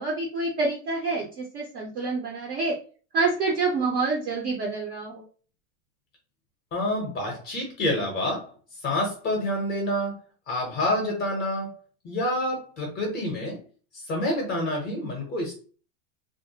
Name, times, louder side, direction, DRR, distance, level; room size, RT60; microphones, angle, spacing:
voice 1, 0.0-2.7 3.1-5.3, right 3 dB, 30° right, -1 dB, 0.4 m, -27 dB
voice 2, 6.7-8.5 8.8-10.2 10.5-11.7 12.0-13.6 13.9-15.6, left 1 dB, 25° left, 0 dB, 0.6 m, -28 dB
2.4 x 2.1 x 2.7 m, 0.38 s
supercardioid pair, 160°, 37 cm